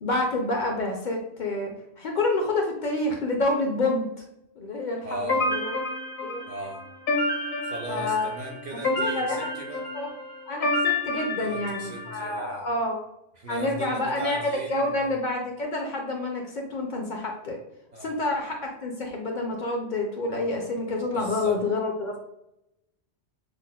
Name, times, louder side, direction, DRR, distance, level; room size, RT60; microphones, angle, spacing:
voice 1, 0.0-4.1 4.6-5.8 6.2-6.4 7.9-8.3 9.0-9.4 9.9-10.1 10.5-13.0 13.5-17.6 18.0-22.2, left 2 dB, 55° left, 1 dB, 0.6 m, -28 dB
voice 2, 5.0-5.4 6.5-6.9 7.6-9.9 11.4-12.7 13.4-15.0 17.9-18.1 21.0-21.6, right 1 dB, 50° right, 0 dB, 0.5 m, -38 dB
sound 1, 5.3-12.2, left 2 dB, 70° left, 1.0 m, -29 dB
6.0 x 2.0 x 2.2 m, 0.84 s
omnidirectional pair, 1.1 m